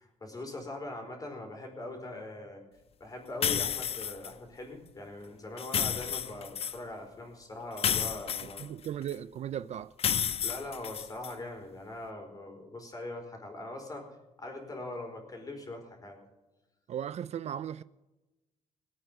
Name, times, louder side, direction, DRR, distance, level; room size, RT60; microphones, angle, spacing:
voice 1, 0.2-2.6 3.0-8.7 10.4-14.1 14.4-16.2, left 2 dB, 25° left, 4.5 m, -41 dB
sound 1, 3.4-4.3 5.6-6.8 7.8-9.1 10.0-11.3, left 8 dB, 45° left, 0.5 m, -31 dB
voice 2, 8.4-9.9 16.9-17.8, right 10 dB, 55° right, 0.4 m, -37 dB
19.5 x 8.9 x 6.8 m
cardioid pair, 115°, 14 cm